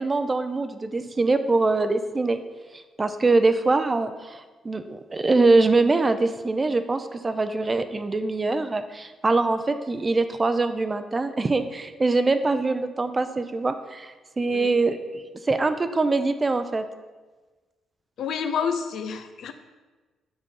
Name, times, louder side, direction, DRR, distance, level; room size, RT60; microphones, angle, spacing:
voice 1, 0.0-2.4 3.0-16.8, right 3 dB, 25° right, 10 dB, 0.6 m, -23 dB
voice 2, 18.2-19.5, left 6 dB, 70° left, 9 dB, 0.7 m, -29 dB
7.6 x 6.2 x 5.4 m, 1.3 s
cardioid pair, 90°, 0 cm